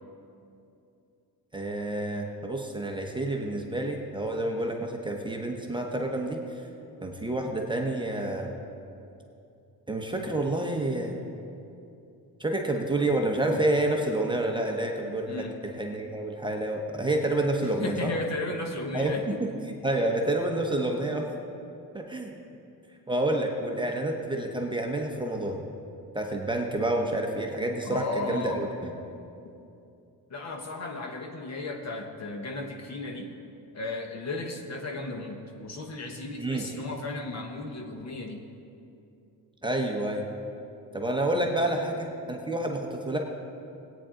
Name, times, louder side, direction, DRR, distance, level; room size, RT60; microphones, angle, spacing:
voice 1, 1.5-6.4 7.0-8.5 9.9-11.2 12.4-15.4 15.8-18.1 18.9-21.3 21.9-22.3 23.1-25.6 26.1-28.7 36.4-36.6 39.6-40.2 40.9-43.2, right 1 dB, 10° right, 1 dB, 0.9 m, -29 dB
voice 2, 15.3-15.6 16.4-16.5 17.6-19.4 27.8-28.7 30.3-33.3 33.7-38.5 41.7-41.9, left 2 dB, 40° left, 4 dB, 1.1 m, -35 dB
17.5 x 9.1 x 3.8 m, 2.7 s
cardioid pair, 135°, 40 cm